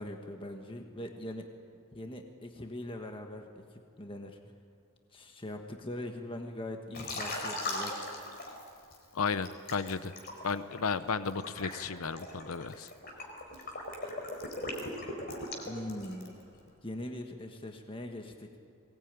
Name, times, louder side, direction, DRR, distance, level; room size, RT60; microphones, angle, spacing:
voice 1, 0.0-1.5 1.9-4.5 5.1-8.0 15.6-16.4 16.8-18.6, left 1 dB, 25° left, 4 dB, 1.4 m, -41 dB
Liquid, 6.9-9.0 9.4-16.4, left 2 dB, 45° left, 4.2 m, -39 dB
voice 2, 9.1-10.1 10.4-12.9, left 5 dB, 80° left, 13 dB, 0.8 m, -33 dB
22.5 x 18.5 x 9.0 m, 2.5 s
head